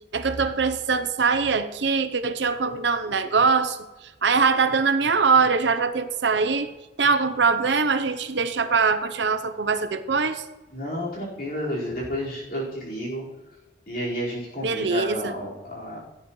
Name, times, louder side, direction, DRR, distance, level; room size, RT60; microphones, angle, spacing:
voice 1, 0.1-3.8 4.2-6.7 7.0-10.4 14.6-15.4, right 5 dB, 75° right, 10 dB, 0.8 m, -22 dB
voice 2, 10.7-13.2 13.9-16.0, equal, 50° left, -6 dB, 4.8 m, -31 dB
17.5 x 9.5 x 3.2 m, 1.1 s
head